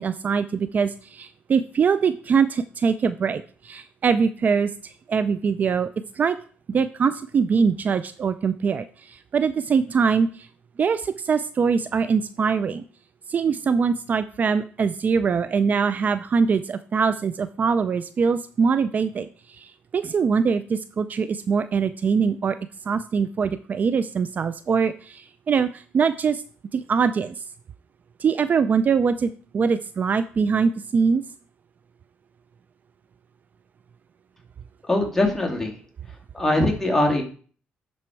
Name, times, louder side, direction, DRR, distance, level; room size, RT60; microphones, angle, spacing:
voice 1, 0.0-5.9 6.1-6.4 6.7-10.5 10.8-12.8 13.3-22.6 22.9-26.4 26.7-27.4 28.2-31.2, right 6 dB, 45° right, 13 dB, 0.4 m, -23 dB
voice 2, 34.9-35.8 36.1-37.2, left 1 dB, 10° left, 0 dB, 2.4 m, -22 dB
11.5 x 4.3 x 4.6 m, 0.43 s
cardioid pair, 90°, 4 cm